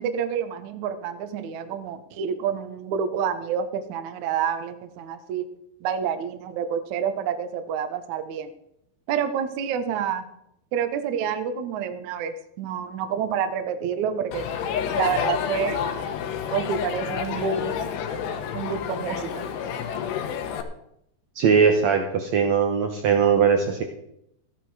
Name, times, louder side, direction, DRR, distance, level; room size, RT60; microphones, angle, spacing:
voice 1, 0.0-5.4 5.8-8.5 9.1-10.2 10.7-14.5 15.0-15.8 16.5-17.7 18.5-19.5, right 7 dB, 75° right, 9 dB, 1.8 m, -28 dB
Crowd, 14.3-20.6, left 8 dB, 80° left, 3.3 m, -29 dB
voice 2, 21.3-23.8, right 6 dB, 90° right, 4 dB, 1.5 m, -20 dB
15.0 x 11.0 x 4.8 m, 0.78 s
omnidirectional pair, 4.9 m